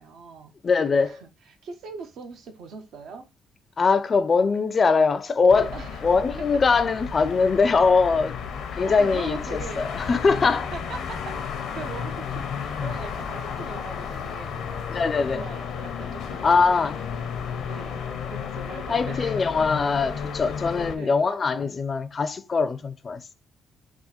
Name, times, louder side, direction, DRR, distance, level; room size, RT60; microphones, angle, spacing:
voice 1, 0.0-0.5 1.0-3.3 5.7-6.0 6.4-6.6 8.1-8.2 8.8-9.9 10.7-14.7 15.3-16.5 17.7-19.7 20.7-21.2, right 5 dB, 75° right, 0.7 m, -41 dB
voice 2, 0.6-1.2 3.8-5.7 6.0-8.4 8.7-10.7 14.9-15.4 16.4-17.0 18.9-23.3, left 4 dB, 40° left, 0.4 m, -22 dB
sound 1, 5.5-21.0, left 6 dB, 80° left, 0.6 m, -33 dB
3.6 x 2.5 x 4.1 m
cardioid pair, 90°, 0 cm